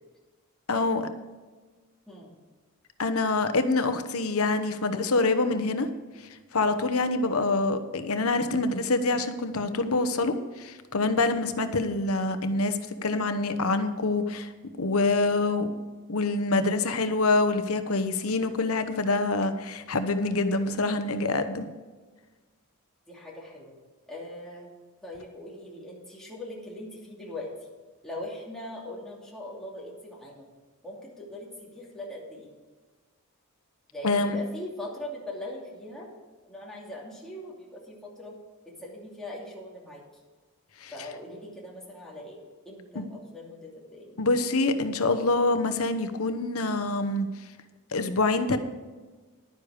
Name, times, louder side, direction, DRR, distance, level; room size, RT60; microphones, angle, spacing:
voice 1, 0.7-1.1 3.0-5.9 6.5-14.5 14.8-15.7 16.1-21.7 34.0-34.4 40.8-40.9 42.9-43.1 44.2-47.3 47.9-48.6, left 3 dB, 75° left, 9 dB, 1.0 m, -26 dB
voice 2, 23.1-23.8 24.1-24.7 25.0-27.5 28.0-30.5 30.8-32.5 33.9-36.1 36.5-38.4 38.6-40.0 40.9-42.4 42.6-44.2, left 1 dB, ahead, -5 dB, 2.8 m, -41 dB
11.5 x 9.8 x 5.0 m, 1.3 s
head